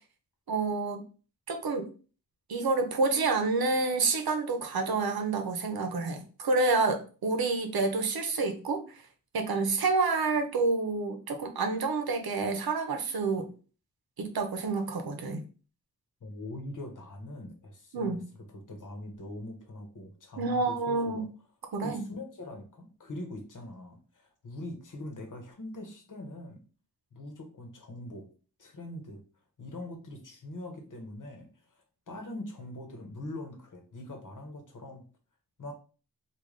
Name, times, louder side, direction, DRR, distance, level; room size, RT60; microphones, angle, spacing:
voice 1, 0.5-1.0 1.5-1.9 2.5-9.0 9.3-13.5 14.2-15.4 17.9-18.2 20.4-21.3 21.7-22.0, right 3 dB, 85° right, 6 dB, 0.7 m, -28 dB
voice 2, 16.2-21.3 21.8-26.6 27.1-28.3 28.6-29.2 29.6-31.5 32.1-35.1 35.6-35.7, left 1 dB, 60° left, 2 dB, 1.0 m, -42 dB
3.2 x 2.3 x 3.7 m, 0.37 s
wide cardioid pair, 105°, 36 cm